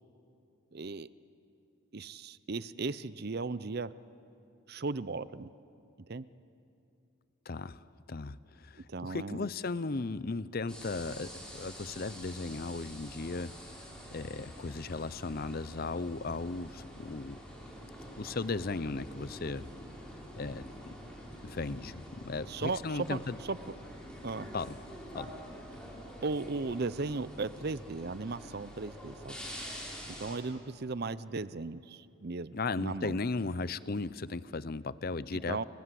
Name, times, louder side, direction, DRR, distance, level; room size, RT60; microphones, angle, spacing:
voice 1, 0.7-1.1 1.9-3.9 4.7-5.5 6.1-6.3 8.9-9.5 22.5-23.2 23.5-23.7 24.2-24.5 26.2-29.4 30.2-33.2 35.5-35.6, right 3 dB, 45° right, 16 dB, 0.6 m, -36 dB
voice 2, 7.5-13.7 14.1-17.4 18.2-19.7 20.4-20.9 21.4-23.4 24.5-24.8 25.1-25.3 32.5-35.6, left 3 dB, 45° left, 16 dB, 0.6 m, -36 dB
sound 1, 10.7-30.4, equal, 5° left, 4.8 m, -47 dB
29.5 x 23.5 x 7.7 m, 2.6 s
head